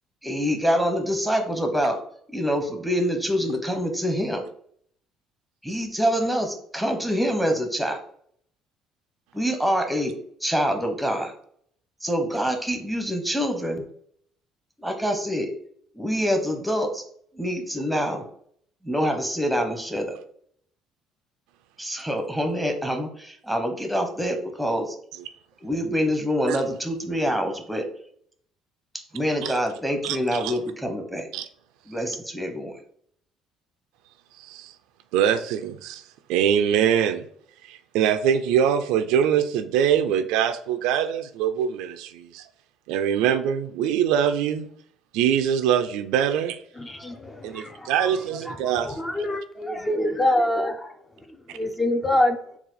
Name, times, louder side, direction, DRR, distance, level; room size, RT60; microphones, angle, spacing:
voice 1, 0.2-2.0 2.3-4.4 5.6-8.0 9.3-10.1 10.4-11.3 12.0-13.8 14.8-15.5 15.9-17.0 17.3-18.2 18.8-20.2 21.8-25.0 25.6-27.8 29.1-31.3 31.9-32.7, equal, ahead, 4 dB, 0.9 m, -25 dB
voice 2, 30.0-30.5 31.3-31.5 34.4-34.7 35.1-36.0 36.3-37.3 37.6-42.5 42.9-44.7 45.1-46.5 47.4-49.3, right 9 dB, 85° right, 10 dB, 0.3 m, -23 dB
voice 3, 47.0-47.9 48.5-48.6 48.9-50.7 51.8-52.4, left 1 dB, 15° left, 6 dB, 0.5 m, -24 dB
4.0 x 2.4 x 4.0 m, 0.62 s
cardioid pair, 95°, 0 cm